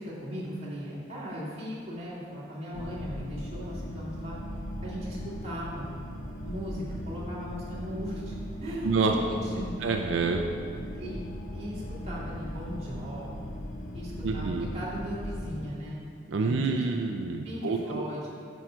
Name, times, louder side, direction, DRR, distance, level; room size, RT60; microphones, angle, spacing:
voice 1, 0.0-4.4 4.8-6.0 6.4-8.3 8.6-9.8 10.9-11.2 11.5-13.6 13.9-16.0 16.4-16.8 17.4-18.3, equal, 35° right, -7 dB, 2.1 m, -37 dB
sound 1, 2.7-15.7, equal, 75° left, 0.9 m, -38 dB
voice 2, 9.8-10.4 14.2-14.7 16.3-18.0, right 4 dB, 85° right, 3 dB, 0.4 m, -27 dB
7.7 x 6.2 x 4.4 m, 2.2 s
head